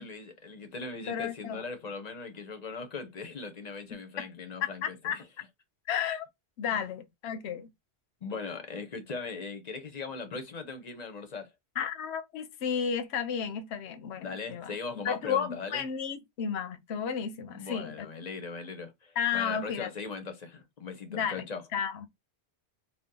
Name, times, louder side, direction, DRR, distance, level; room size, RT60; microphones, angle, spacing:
voice 1, 0.0-5.3 6.7-6.8 8.2-11.5 14.2-15.9 17.5-21.6, left 4 dB, 45° left, 0.7 m, -39 dB
voice 2, 1.1-1.6 4.2-4.3 4.6-5.2 5.9-6.3 6.6-7.7 11.8-14.7 15.0-18.1 19.2-19.9 21.1-21.4 21.7-22.1, left 8 dB, 80° left, 0.9 m, -32 dB
2.7 x 2.2 x 3.6 m
omnidirectional pair, 1.1 m